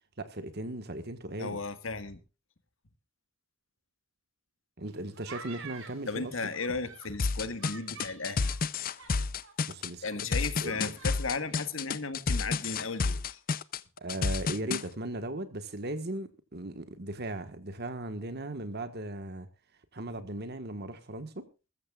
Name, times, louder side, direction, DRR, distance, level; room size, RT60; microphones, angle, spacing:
voice 1, 0.2-1.6 4.8-6.3 9.7-10.3 10.6-10.9 14.0-19.5 19.9-21.5, right 1 dB, 55° right, 1.5 m, -37 dB
voice 2, 1.4-2.2 6.1-8.5 10.0-13.4, left 4 dB, 75° left, 1.7 m, -35 dB
sound 1, 4.9-7.1 7.6-9.5 9.8-9.9 10.1-11.2 11.5-11.7, right 6 dB, 75° right, 3.8 m, -48 dB
sound 2, 7.2-14.8, left 4 dB, 45° left, 0.6 m, -30 dB
21.5 x 14.0 x 2.4 m
head